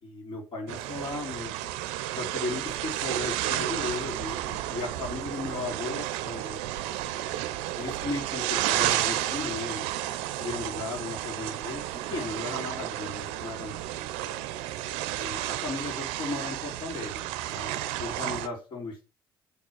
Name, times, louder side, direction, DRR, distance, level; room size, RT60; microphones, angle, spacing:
voice 1, 0.0-1.5 2.2-6.6 7.7-10.0 10.4-11.8 12.1-13.7 15.2-17.1 17.5-19.0, left 3 dB, 50° left, -4 dB, 3.0 m, -36 dB
sound 1, 0.7-18.5, right 14 dB, 70° right, 0.5 m, -32 dB
6.2 x 3.6 x 5.8 m, 0.33 s
hypercardioid pair, 50°, 11 cm